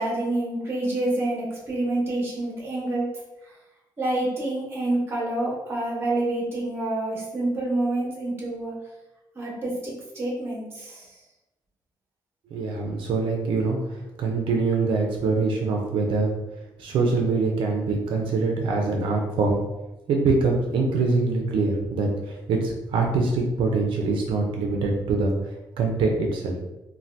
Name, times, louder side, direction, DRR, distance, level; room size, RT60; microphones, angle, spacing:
voice 1, 0.0-3.1 4.0-8.7 9.3-11.1, right 2 dB, 30° right, -3 dB, 0.8 m, -27 dB
voice 2, 12.5-16.3 16.8-19.6 20.1-25.3 25.8-26.6, right 3 dB, 80° right, 1 dB, 0.4 m, -24 dB
2.7 x 2.2 x 3.2 m, 1.0 s
cardioid pair, 155°, 8 cm